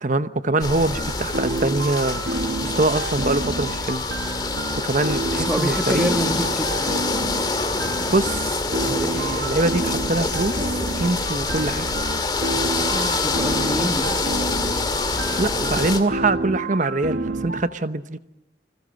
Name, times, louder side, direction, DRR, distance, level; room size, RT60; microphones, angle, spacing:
voice 1, 0.0-2.2 2.6-4.1 4.8-6.1 8.1-11.9 15.4-18.2, right 2 dB, 45° right, 12 dB, 1.0 m, -24 dB
sound 1, 0.6-16.0, left 3 dB, 25° left, 2.2 m, -26 dB
sound 2, 0.9-17.6, right 2 dB, 65° right, 1.9 m, -29 dB
voice 2, 5.3-7.3 12.9-14.6, equal, 5° right, 5 dB, 2.1 m, -28 dB
28.5 x 21.0 x 7.7 m, 0.87 s
head